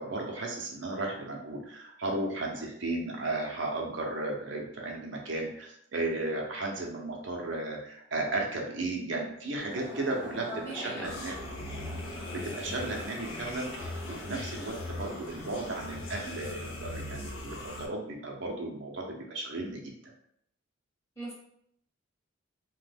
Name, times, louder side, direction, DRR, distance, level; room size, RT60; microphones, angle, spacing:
voice 1, 0.0-11.5 12.3-20.1, right 2 dB, 65° right, 0 dB, 0.6 m, -35 dB
sound 1, 9.6-15.8, left 1 dB, 5° right, 0.6 m, -45 dB
voice 2, 10.5-11.1 21.2-21.3, right 1 dB, 15° left, -6 dB, 0.9 m, -39 dB
sound 2, 11.0-17.9, left 2 dB, 70° left, 0.5 m, -40 dB
2.9 x 2.2 x 3.3 m, 0.72 s
head